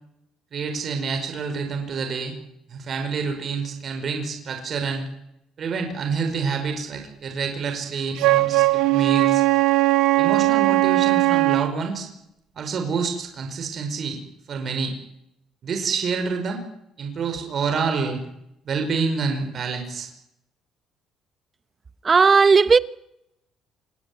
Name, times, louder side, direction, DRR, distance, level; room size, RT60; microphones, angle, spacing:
voice 1, 0.5-2.3 2.7-5.1 5.6-9.4 10.2-12.1 12.5-14.2 14.5-14.9 15.6-16.6 17.0-18.2 18.6-20.1, right 5 dB, 40° right, 4.9 m, -27 dB
Wind instrument woodwind instrument, 8.2-11.7, right 19 dB, 90° right, 1.1 m, -19 dB
voice 2, 22.0-22.8, right 5 dB, 25° right, 1.0 m, -14 dB
28.0 x 19.0 x 9.7 m
cardioid pair, 150°, 0 cm